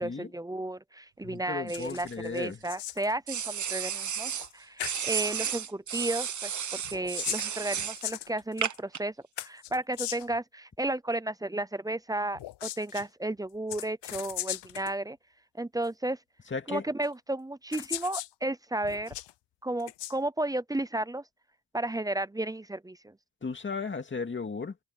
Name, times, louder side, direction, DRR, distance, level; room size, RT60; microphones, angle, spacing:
voice 1, 0.0-9.1 9.4-15.2 15.6-16.2 16.7-19.1 19.6-21.2 21.7-23.1, right 1 dB, 10° right, 0.5 m, -33 dB
voice 2, 1.2-2.6 16.5-16.8 23.4-24.8, left 5 dB, 25° left, 2.3 m, -35 dB
sound 1, 1.7-2.2 2.4-3.1 4.4-4.5 4.8-5.1 6.8-8.8 9.4-10.4 12.3-13.1 13.7-14.9 15.8-15.9 17.0-17.1 17.7-18.3 18.8-19.3 19.8-20.1, left 14 dB, 65° left, 0.7 m, -38 dB
sound 2, 1.7-2.7 3.3-4.5 4.8-8.0 8.6-9.0, right 8 dB, 40° right, 1.1 m, -33 dB
open air
cardioid pair, 135°, 46 cm